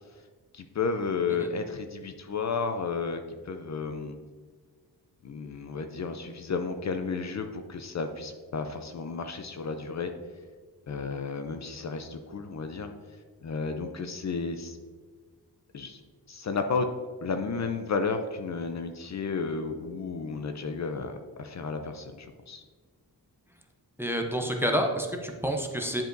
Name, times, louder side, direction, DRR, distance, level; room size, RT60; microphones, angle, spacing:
voice 1, 0.5-4.2 5.2-10.1 10.9-12.9 13.4-14.8 15.7-16.0 16.3-16.9 17.2-22.6, left 4 dB, 45° left, 7 dB, 0.5 m, -32 dB
voice 2, 24.0-26.1, equal, 5° right, 3 dB, 0.6 m, -28 dB
10.0 x 5.0 x 2.6 m, 1.5 s
wide cardioid pair, 140°, 39 cm